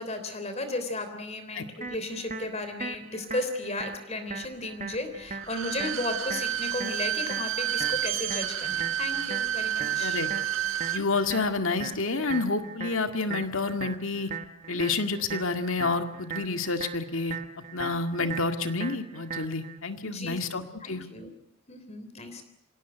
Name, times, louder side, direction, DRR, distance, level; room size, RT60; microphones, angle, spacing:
voice 1, 0.0-10.2 20.0-20.4 20.8-21.3 21.7-22.4, left 2 dB, 30° left, 8 dB, 3.4 m, -34 dB
sound 1, 1.8-19.8, right 5 dB, 35° right, 1.3 m, -40 dB
Bowed string instrument, 5.4-11.0 11.4-11.5, right 11 dB, 70° right, 2.0 m, -30 dB
voice 2, 10.0-10.3 10.9-14.3 14.7-17.4 17.7-21.0, left 3 dB, 75° left, 7 dB, 2.0 m, -29 dB
26.0 x 17.0 x 9.1 m, 0.80 s
head